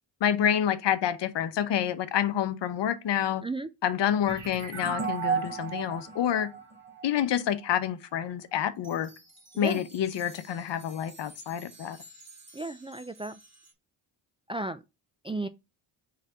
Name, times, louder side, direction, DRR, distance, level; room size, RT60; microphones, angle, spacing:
voice 1, 0.2-3.4 3.8-6.5 7.0-9.1 9.6-12.0, left 9 dB, 60° left, 0.9 m, -28 dB
sound 1, 4.3-7.7, right 6 dB, 75° right, 2.9 m, -34 dB
sound 2, 8.7-13.7, right 1 dB, 30° right, 2.4 m, -53 dB
voice 2, 12.5-13.4 14.5-14.8 15.2-15.5, right 2 dB, 10° right, 0.4 m, -34 dB
5.8 x 3.3 x 4.9 m
supercardioid pair, 55°, 48 cm